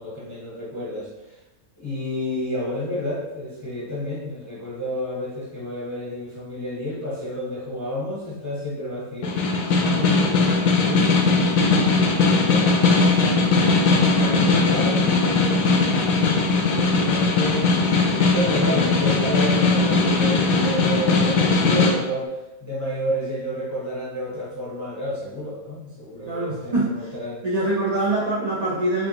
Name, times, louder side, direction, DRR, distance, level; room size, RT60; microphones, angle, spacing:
voice 1, 0.0-1.4 1.8-9.4 9.8-10.5 10.9-11.5 12.2-12.7 13.2-15.6 16.6-17.6 18.3-27.4, equal, 15° left, -7 dB, 0.8 m, -30 dB
Snare drum, 9.2-22.0, left 3 dB, 75° left, 1.0 m, -19 dB
voice 2, 9.8-10.5 26.3-26.9 27.4-29.1, right 2 dB, 40° right, -7 dB, 0.6 m, -25 dB
4.4 x 2.7 x 2.8 m, 1.0 s
omnidirectional pair, 1.5 m